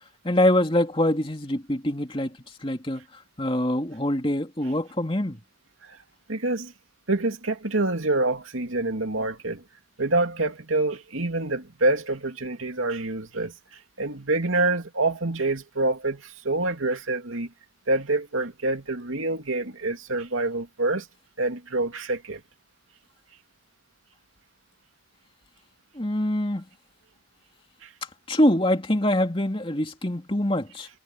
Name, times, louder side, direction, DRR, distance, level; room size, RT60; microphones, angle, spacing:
voice 1, 0.2-5.4 25.9-26.7 28.3-30.9, left 1 dB, 25° left, 2.7 m, -24 dB
voice 2, 6.3-6.7 7.1-9.6 10.0-17.5 17.9-21.1 21.4-22.4 27.8-27.9, right 2 dB, 85° right, 2.7 m, -26 dB
head